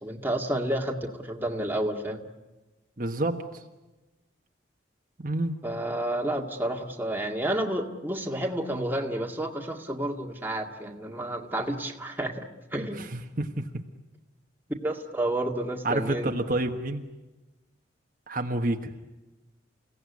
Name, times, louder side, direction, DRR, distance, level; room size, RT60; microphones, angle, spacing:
voice 1, 0.0-2.2 5.6-12.5 12.7-13.0 14.8-16.3, right 1 dB, 10° right, 1 dB, 2.0 m, -30 dB
voice 2, 3.0-3.6 5.2-5.5 13.0-13.7 15.8-17.0 18.3-18.9, right 2 dB, 45° right, 3 dB, 1.4 m, -29 dB
29.5 x 17.0 x 9.6 m, 1.1 s
head